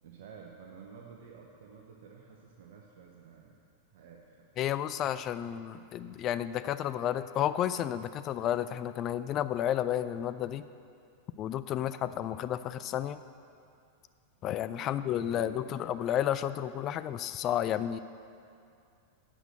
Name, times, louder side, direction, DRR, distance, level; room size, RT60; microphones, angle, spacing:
voice 1, 0.0-3.5 3.9-4.7 5.7-5.9 11.8-12.1 14.8-15.8, right 6 dB, 55° right, 0 dB, 0.8 m, -52 dB
voice 2, 4.6-10.6 11.4-13.2 14.4-18.0, left 11 dB, 35° left, 13 dB, 0.3 m, -31 dB
8.1 x 5.9 x 7.4 m, 2.5 s
figure-of-eight pair, 90°, 0 cm